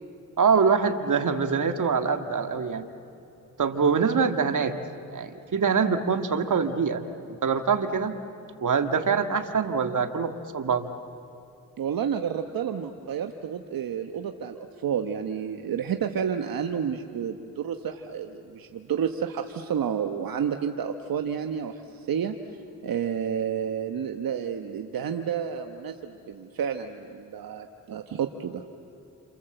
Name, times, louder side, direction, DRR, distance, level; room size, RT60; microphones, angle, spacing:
voice 1, 0.4-2.9 3.6-4.8 5.1-7.0 7.3-8.1 8.6-10.9, right 5 dB, 60° right, 7 dB, 1.8 m, -24 dB
voice 2, 11.8-22.3 22.8-28.6, right 8 dB, 80° right, 6 dB, 1.1 m, -30 dB
29.0 x 26.5 x 7.8 m, 2.7 s
cardioid pair, 60°, 35 cm